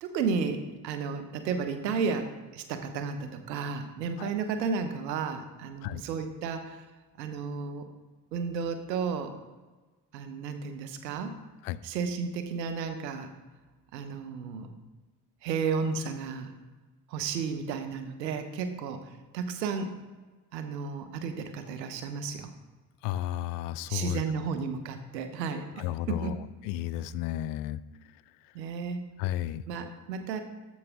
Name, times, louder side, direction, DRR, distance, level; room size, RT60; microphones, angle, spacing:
voice 1, 0.0-6.9 7.2-7.9 8.3-9.4 10.1-11.4 11.8-13.3 13.9-14.7 15.4-16.5 17.1-19.9 20.5-22.5 23.9-26.4 28.5-29.0 29.7-30.4, right 5 dB, 85° right, 8 dB, 0.8 m, -33 dB
voice 2, 23.0-24.2 25.8-26.4 26.6-27.8 29.2-29.6, left 13 dB, 75° left, 16 dB, 0.5 m, -32 dB
13.0 x 4.8 x 3.5 m, 1.3 s
figure-of-eight pair, 40°, 49 cm